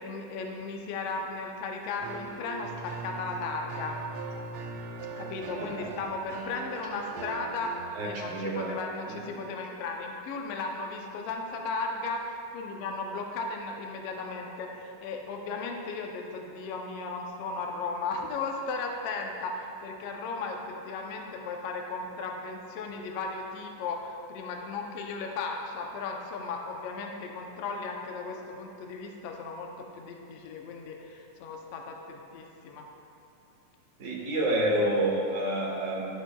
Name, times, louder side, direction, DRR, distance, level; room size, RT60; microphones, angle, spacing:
voice 1, 0.0-4.0 5.2-32.8, left 3 dB, 75° left, 2 dB, 1.4 m, -36 dB
sound 1, 2.0-7.8, right 4 dB, 85° right, 1.3 m, -40 dB
voice 2, 5.6-5.9 7.9-8.7 9.1-9.3 34.0-36.1, right 1 dB, 70° right, -3 dB, 0.7 m, -29 dB
12.5 x 8.0 x 2.3 m, 2.7 s
omnidirectional pair, 3.5 m